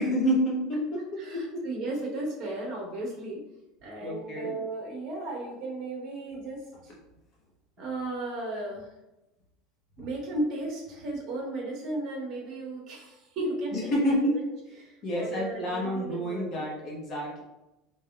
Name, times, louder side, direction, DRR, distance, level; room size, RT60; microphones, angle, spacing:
voice 1, 0.0-1.0 1.3-1.6 4.0-4.5 13.7-14.4 15.0-17.4, equal, 35° left, -3 dB, 0.9 m, -28 dB
voice 2, 1.2-3.4 3.8-6.6 7.8-8.9 10.0-13.9 14.3-14.4 14.8-16.7, right 2 dB, 40° right, -2 dB, 1.2 m, -35 dB
3.8 x 3.3 x 2.4 m, 0.96 s
supercardioid pair, 160°, 0 cm